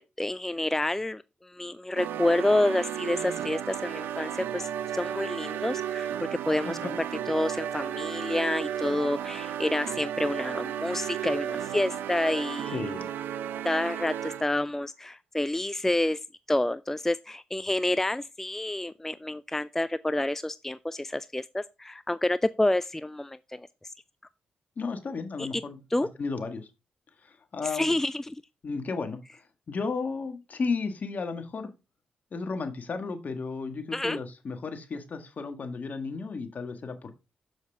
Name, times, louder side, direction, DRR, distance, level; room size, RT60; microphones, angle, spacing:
voice 1, 0.0-6.1 6.5-6.9 7.3-12.8 13.6-16.2 16.5-23.9 25.4-25.6 25.9-26.1 27.6-28.4 33.9-34.2, left 1 dB, 10° left, 0.3 m, -28 dB
sound 1, 2.0-14.6, right 10 dB, 85° right, 0.6 m, -34 dB
voice 2, 6.6-7.0 12.7-13.1 24.8-26.7 27.5-27.9 28.6-29.2 29.7-31.7 32.3-37.2, left 4 dB, 55° left, 1.7 m, -33 dB
7.2 x 6.2 x 3.5 m
cardioid pair, 60°, 3 cm